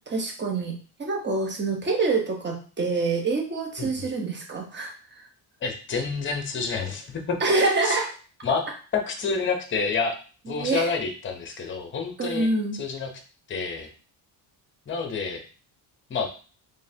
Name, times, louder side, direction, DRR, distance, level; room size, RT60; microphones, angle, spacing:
voice 1, 0.1-5.2 7.4-8.1 10.5-10.9 12.2-12.7, right 3 dB, 25° right, 1 dB, 1.0 m, -26 dB
voice 2, 5.6-7.4 7.8-8.0 8.4-8.6 8.9-10.2 10.5-13.1 13.5-13.9 14.9-15.4 16.1-16.3, left 5 dB, 25° left, 4 dB, 0.7 m, -28 dB
3.7 x 3.4 x 2.8 m, 0.37 s
cardioid pair, 135°, 47 cm